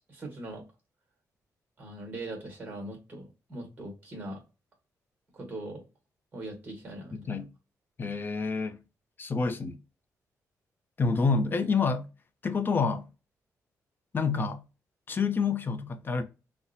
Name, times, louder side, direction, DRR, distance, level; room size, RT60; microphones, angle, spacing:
voice 1, 0.1-0.6 1.8-4.4 5.3-5.8 6.3-7.4, right 1 dB, 30° right, 1.3 m, -41 dB
voice 2, 7.1-7.5 8.0-8.8 9.2-9.8 11.0-12.1 12.4-13.1 14.1-14.6 15.1-16.2, left 4 dB, 35° left, 0.5 m, -28 dB
3.9 x 2.1 x 2.6 m
cardioid pair, 110°, 6 cm